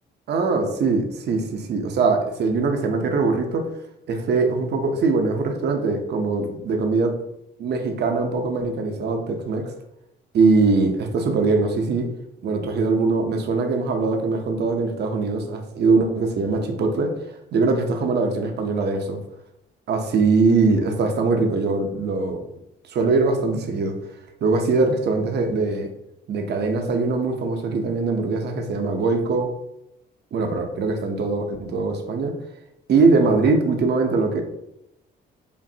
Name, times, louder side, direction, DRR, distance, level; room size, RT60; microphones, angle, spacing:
voice 1, 0.3-3.6 4.1-7.1 7.6-9.7 10.3-12.1 12.4-17.1 17.5-19.2 19.9-22.4 22.9-23.9 24.4-25.9 26.3-29.5 30.3-32.3 32.9-34.4, right 3 dB, 55° right, 4 dB, 0.6 m, -22 dB
5.1 x 2.5 x 2.7 m, 0.84 s
cardioid pair, 90°, 20 cm